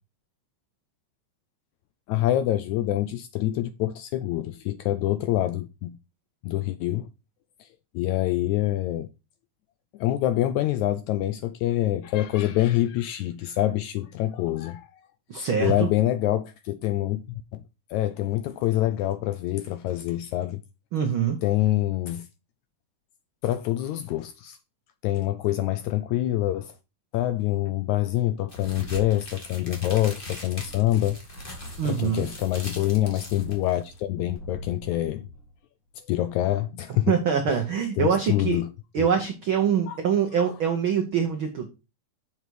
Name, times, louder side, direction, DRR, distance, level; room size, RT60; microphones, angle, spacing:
voice 1, 2.1-6.0 6.4-7.1 7.6-7.7 7.9-9.1 9.9-15.0 15.6-17.6 17.9-20.6 21.4-22.3 23.4-24.6 25.0-26.8 27.1-31.2 31.8-35.3 36.1-37.2 37.5-37.6 38.0-38.7 39.0-39.1 39.9-40.0, left 14 dB, 80° left, 1.7 m, -26 dB
voice 2, 15.3-15.9 20.9-21.4 31.8-32.3 37.1-38.6 38.9-41.7, right 7 dB, 75° right, 1.1 m, -24 dB
sound 1, 28.5-34.0, equal, 20° left, 1.7 m, -40 dB
sound 2, 31.3-35.6 35.9-36.0, equal, 40° left, 2.3 m, -46 dB
7.0 x 6.6 x 4.6 m
omnidirectional pair, 3.8 m